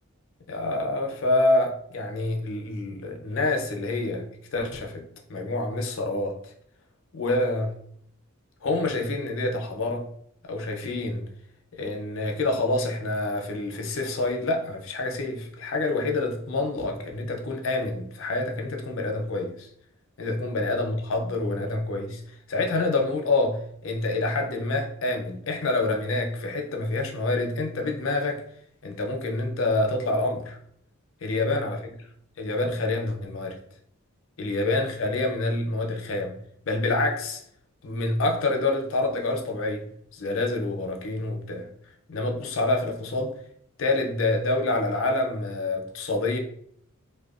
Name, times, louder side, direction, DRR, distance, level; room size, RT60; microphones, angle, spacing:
voice 1, 0.5-4.2 4.5-5.0 5.3-6.5 7.1-7.7 8.6-10.1 10.4-11.3 11.7-19.7 20.2-22.2 22.5-28.4 28.8-30.6 31.2-31.9 32.4-33.6 34.4-36.4 36.7-37.4 37.8-39.8 40.1-41.7 42.1-43.3 43.8-46.4, left 2 dB, 65° left, 2 dB, 0.5 m, -27 dB
2.7 x 2.1 x 2.4 m, 0.67 s
head